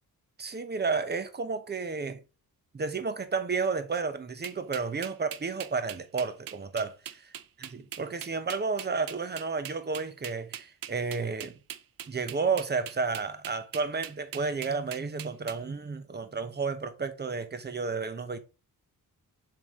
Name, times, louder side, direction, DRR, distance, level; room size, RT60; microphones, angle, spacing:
voice 1, 0.4-2.2 2.7-7.3 8.0-11.6 12.1-18.4, right 4 dB, 25° right, 0.8 m, -32 dB
sound 1, 4.4-15.6, right 10 dB, 65° right, 0.7 m, -41 dB
7.3 x 4.9 x 3.7 m
wide cardioid pair, 155°, 37 cm